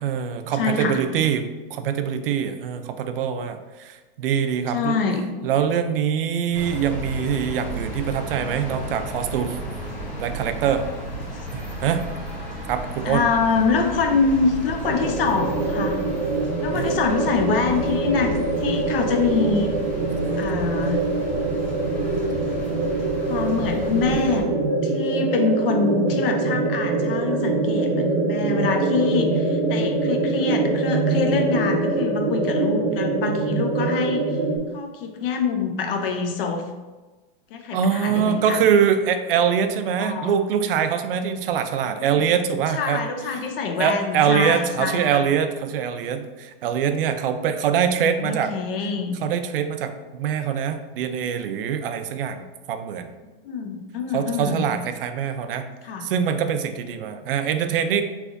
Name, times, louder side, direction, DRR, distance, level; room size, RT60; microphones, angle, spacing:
voice 1, 0.0-5.0 5.4-9.6 10.2-10.8 11.5-12.1 12.7-13.2 16.7-16.9 20.1-20.2 37.7-43.1 43.8-48.5 49.2-53.1 54.1-55.7 56.0-58.0, right 8 dB, 70° right, 9 dB, 0.4 m, -23 dB
voice 2, 0.5-1.0 4.7-5.2 11.3-11.4 13.0-16.0 16.6-19.7 20.4-21.0 23.3-24.5 24.8-34.4 34.7-36.6 37.5-38.6 40.0-40.3 42.0-42.3 42.7-45.2 47.7-49.1 53.4-54.7 55.8-56.1, left 5 dB, 70° left, 4 dB, 0.7 m, -25 dB
sound 1, 6.5-24.4, right 1 dB, 5° left, 0.9 m, -33 dB
sound 2, 14.8-34.6, right 3 dB, 85° right, 0.8 m, -24 dB
3.4 x 2.4 x 3.8 m, 1.2 s
supercardioid pair, 165°, 29 cm